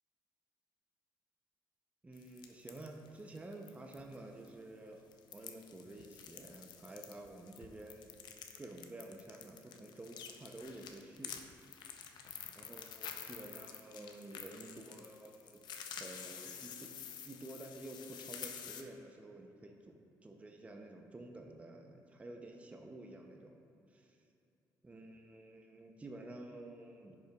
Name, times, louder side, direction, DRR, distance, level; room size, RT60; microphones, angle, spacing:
voice 1, 2.0-8.1 8.6-11.4 12.6-15.6 16.0-16.9 17.2-23.6 23.9-24.2 24.8-27.2, right 2 dB, 15° right, 2 dB, 0.5 m, -51 dB
sound 1, 2.1-4.2 4.4-4.5 5.1-18.8, left 8 dB, 70° left, 0.5 m, -49 dB
10.5 x 5.3 x 2.3 m, 2.7 s
cardioid pair, 105°, 8 cm